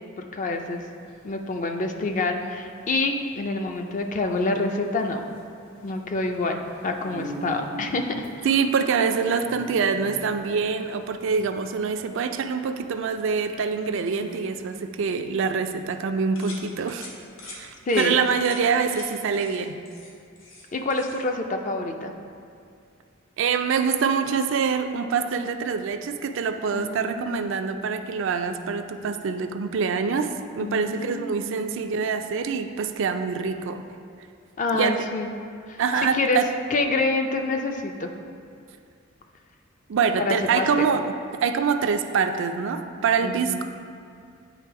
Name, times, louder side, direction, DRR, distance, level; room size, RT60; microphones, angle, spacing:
voice 1, 0.2-0.8 1.2-5.2 5.8-8.3 17.9-18.2 20.7-22.1 26.7-27.5 30.6-31.6 34.6-35.3 35.7-35.8 36.1-36.4 36.7-38.1 40.2-40.9 43.2-43.6, left 2 dB, 40° left, 4 dB, 0.5 m, -27 dB
sound 1, 0.6-14.8, right 1 dB, 55° left, 1.4 m, -43 dB
voice 2, 8.4-17.1 17.5-19.8 23.4-33.8 34.7-35.0 35.8-36.5 39.9-41.0 41.4-43.6, right 5 dB, 65° right, 7 dB, 0.4 m, -25 dB
sound 2, 16.4-16.6 16.9-17.1 17.4-17.6 17.9-18.1 18.4-18.6 18.9-19.1 19.3-19.6 19.9-20.7 20.9-21.2, left 3 dB, 70° left, 1.4 m, -42 dB
8.9 x 3.3 x 4.6 m, 2.4 s
head